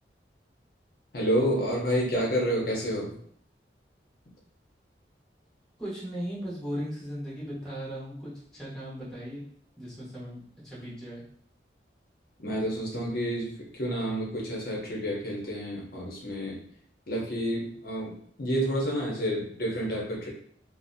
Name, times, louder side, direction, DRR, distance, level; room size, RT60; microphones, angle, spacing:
voice 1, 1.1-3.2 12.4-16.6 17.1-20.3, equal, 55° left, -3 dB, 0.7 m, -29 dB
voice 2, 5.8-9.4 9.8-11.2, equal, 5° left, -8 dB, 0.7 m, -37 dB
2.5 x 2.0 x 2.5 m, 0.63 s
head